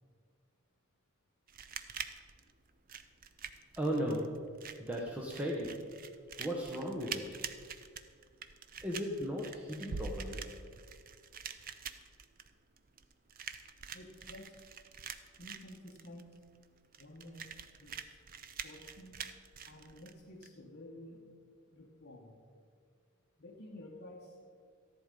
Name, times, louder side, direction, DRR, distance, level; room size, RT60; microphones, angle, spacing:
sound 1, 1.5-20.5, right 7 dB, 40° right, 0.6 m, -47 dB
voice 1, 3.8-4.4 4.8-5.9 6.4-7.4 8.8-10.4, equal, 5° right, -3 dB, 1.1 m, -36 dB
sound 2, 9.9-11.7, right 2 dB, 90° right, 0.6 m, -44 dB
voice 2, 13.9-14.6 15.4-16.3 17.0-17.5 17.8-18.1 18.6-19.2 19.6-21.2 21.7-22.3 23.4-24.4, left 1 dB, 50° left, -3 dB, 1.2 m, -51 dB
14.0 x 11.0 x 5.3 m, 2.1 s
head